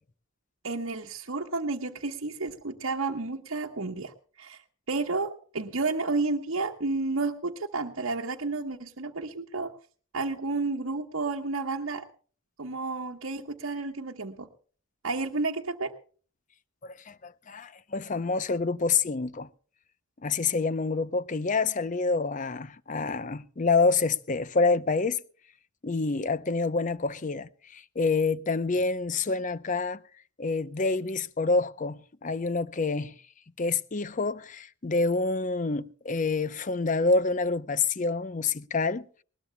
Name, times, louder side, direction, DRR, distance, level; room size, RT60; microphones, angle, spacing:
voice 1, 0.6-4.6 4.9-9.7 10.1-12.0 12.6-14.5 15.0-15.9, right 3 dB, 80° right, 1.1 m, -31 dB
voice 2, 16.8-19.5 20.2-25.2 25.8-30.0 30.4-33.2 33.6-39.1, left 4 dB, 40° left, 0.6 m, -27 dB
20.5 x 19.5 x 2.2 m
head